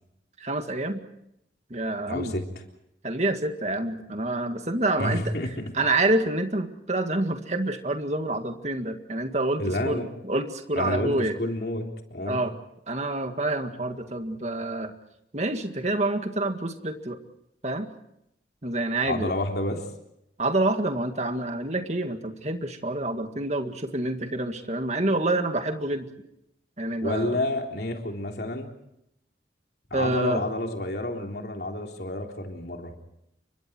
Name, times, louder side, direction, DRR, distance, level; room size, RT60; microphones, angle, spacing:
voice 1, 0.4-1.0 1.7-2.3 3.0-5.3 5.7-11.4 12.3-12.5 12.9-14.9 15.3-17.2 17.6-17.9 18.6-19.3 20.4-26.1 26.8-27.4 29.9-30.4, right 2 dB, 40° right, 6 dB, 2.0 m, -27 dB
voice 2, 2.1-2.4 5.0-5.5 9.6-10.1 10.7-12.4 19.1-19.9 27.0-28.7 29.9-32.9, left 1 dB, 60° left, 2 dB, 3.6 m, -29 dB
29.5 x 24.5 x 4.6 m, 0.79 s
head